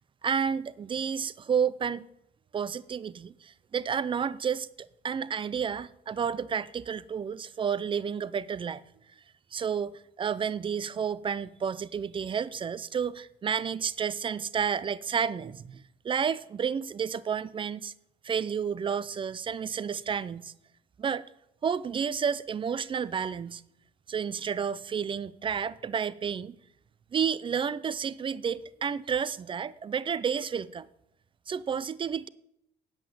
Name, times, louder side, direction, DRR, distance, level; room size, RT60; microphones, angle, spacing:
voice 1, 0.2-2.1 2.5-8.8 9.5-17.9 18.2-20.5 21.0-21.3 21.6-23.6 24.1-26.6 27.1-30.9 31.5-32.3, right 7 dB, 30° right, 0.5 m, -31 dB
8.3 x 7.7 x 8.7 m
cardioid pair, 110°, 17 cm